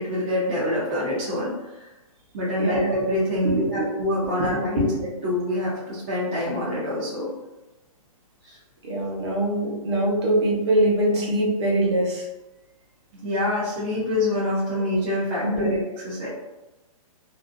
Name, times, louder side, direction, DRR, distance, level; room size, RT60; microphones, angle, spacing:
voice 1, 0.0-1.9 2.3-7.3 8.4-8.6 13.2-15.8 16.0-16.3, left 1 dB, 15° right, -8 dB, 0.3 m, -26 dB
voice 2, 3.4-3.9 4.4-4.8 8.8-12.3 15.4-15.7, right 1 dB, 50° right, -3 dB, 0.9 m, -23 dB
2.5 x 2.3 x 2.4 m, 1.0 s
hypercardioid pair, 170°, 19 cm